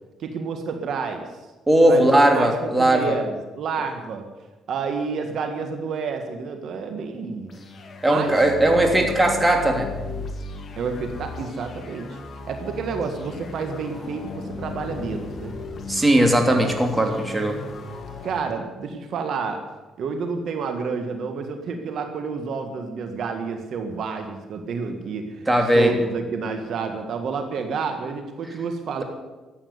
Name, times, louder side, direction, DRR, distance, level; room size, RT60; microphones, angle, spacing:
voice 1, 0.2-1.3 1.9-4.2 4.7-7.5 8.1-8.3 10.8-12.2 12.5-15.6 18.2-19.6 20.0-25.5 25.7-29.0, right 5 dB, 65° right, 5 dB, 1.7 m, -29 dB
voice 2, 1.7-3.1 8.0-9.9 15.9-17.6 25.5-25.9, right 1 dB, 15° right, 3 dB, 3.0 m, -18 dB
sound 1, 7.5-18.5, left 3 dB, 45° left, 2.1 m, -36 dB
14.0 x 8.9 x 9.5 m, 1.2 s
cardioid pair, 90°, 0 cm